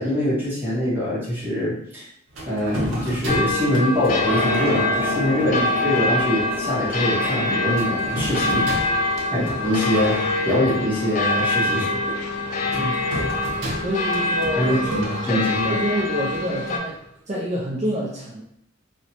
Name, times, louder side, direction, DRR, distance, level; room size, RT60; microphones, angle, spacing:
voice 1, 0.0-2.0 2.5-8.7 9.3-10.2 10.4-11.9 12.7-12.9 14.6-15.8, left 1 dB, 10° right, -8 dB, 0.8 m, -23 dB
sound 1, 2.3-17.0, right 1 dB, 75° right, 0.7 m, -34 dB
sound 2, 3.3-16.8, left 2 dB, 40° left, 0.4 m, -25 dB
sound 3, 4.2-10.8, left 2 dB, 60° left, 0.8 m, -33 dB
voice 2, 12.8-13.3 13.8-17.0 17.3-18.4, equal, 35° right, -5 dB, 0.3 m, -28 dB
2.5 x 2.1 x 2.8 m, 0.73 s
head